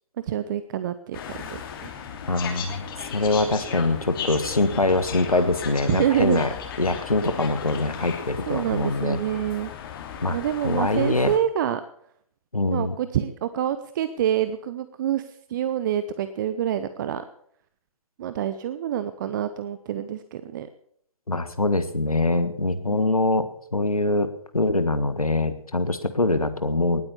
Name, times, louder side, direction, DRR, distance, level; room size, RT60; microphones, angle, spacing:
voice 1, 0.2-1.2 1.5-1.9 5.9-6.4 8.0-8.1 8.5-9.7 10.3-11.8 12.6-17.2 18.2-20.7 22.8-23.1, right 10 dB, 35° right, 12 dB, 0.8 m, -27 dB
sound 1, 1.1-11.4, left 7 dB, 40° left, 2.8 m, -36 dB
voice 2, 2.3-2.8 3.1-6.5 6.8-9.2 10.2-10.4 10.6-11.3 12.5-12.9 21.3-27.0, left 2 dB, 80° left, 11 dB, 1.5 m, -23 dB
19.0 x 8.9 x 7.0 m, 0.66 s
figure-of-eight pair, 125°, 18 cm